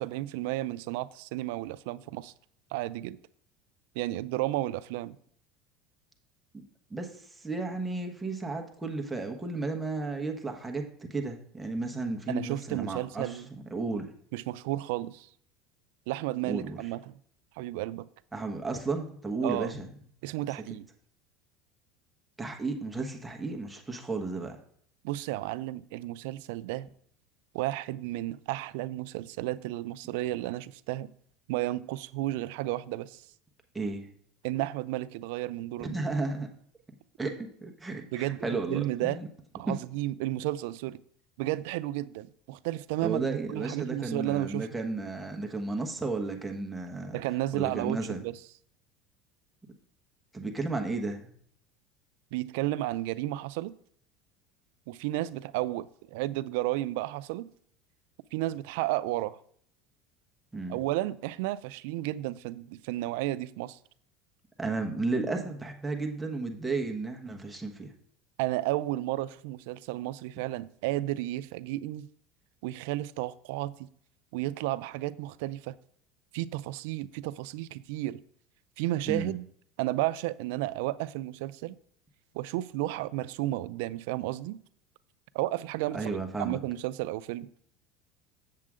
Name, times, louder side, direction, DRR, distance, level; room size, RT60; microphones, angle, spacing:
voice 1, 0.0-2.3 2.7-3.2 4.0-5.2 12.3-13.5 14.3-15.3 16.1-17.1 17.6-18.1 19.4-19.7 20.2-20.9 25.0-26.9 27.5-31.1 31.5-33.2 34.4-36.0 38.1-39.2 39.5-41.0 41.4-44.7 47.1-48.4 52.3-53.7 54.9-57.5 58.3-59.4 60.7-63.8 68.4-72.1 72.6-73.9 74.3-75.8 76.3-78.2 78.8-79.4 79.8-81.8 82.3-84.6 85.3-86.1 86.4-87.5, right 16 dB, 80° right, 0.4 m, -32 dB
voice 2, 7.4-14.1 16.4-16.8 18.3-19.9 22.4-24.6 33.7-34.1 35.8-36.5 37.2-39.3 39.6-39.8 43.0-47.2 47.5-48.3 50.3-51.3 60.5-60.8 64.6-67.9 79.1-79.3 85.9-86.6, right 3 dB, 10° right, 1.2 m, -33 dB
7.6 x 7.5 x 3.7 m
supercardioid pair, 125°, 0 cm